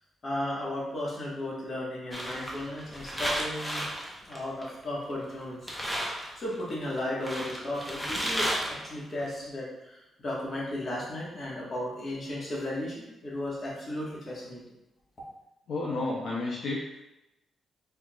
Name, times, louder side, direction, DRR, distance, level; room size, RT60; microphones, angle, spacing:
voice 1, 0.2-3.8 4.3-5.7 6.3-8.5 8.8-9.7 10.2-14.6, left 1 dB, 40° left, -5 dB, 1.5 m, -34 dB
sound 1, 2.1-5.0 5.3-5.4 5.7-9.3, equal, 5° left, 0.7 m, -33 dB
voice 2, 15.7-17.0, left 2 dB, 70° left, -5 dB, 0.7 m, -32 dB
4.6 x 3.6 x 2.4 m, 0.90 s
cardioid pair, 130°, 0 cm